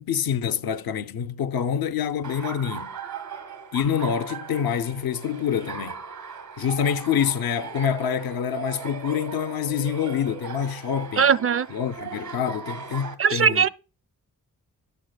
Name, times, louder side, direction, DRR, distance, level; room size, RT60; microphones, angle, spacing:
voice 1, 0.0-2.9 3.7-6.0 6.6-11.3 11.7-13.7, left 8 dB, 75° left, 0.6 m, -26 dB
Laughter, 2.2-13.1, right 6 dB, 80° right, 1.4 m, -38 dB
voice 2, 11.2-11.7 13.2-13.7, right 6 dB, 40° right, 0.5 m, -19 dB
11.5 x 7.9 x 2.3 m
cardioid pair, 45°, 36 cm